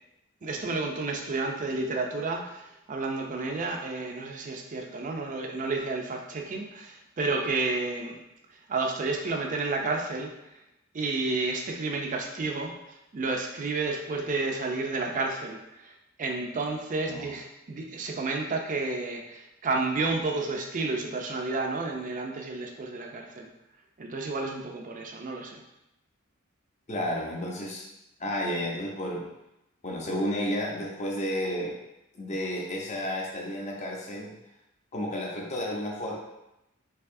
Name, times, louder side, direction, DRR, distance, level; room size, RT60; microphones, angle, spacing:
voice 1, 0.4-2.6 2.9-8.2 8.7-10.3 10.9-12.7 13.1-15.9 16.2-23.5 24.0-25.6, right 3 dB, 40° right, 2 dB, 0.4 m, -31 dB
voice 2, 26.9-27.9 28.2-29.3 29.8-31.8 32.1-34.3 34.9-36.2, equal, 35° left, -1 dB, 0.7 m, -32 dB
4.6 x 2.7 x 2.6 m, 0.90 s
head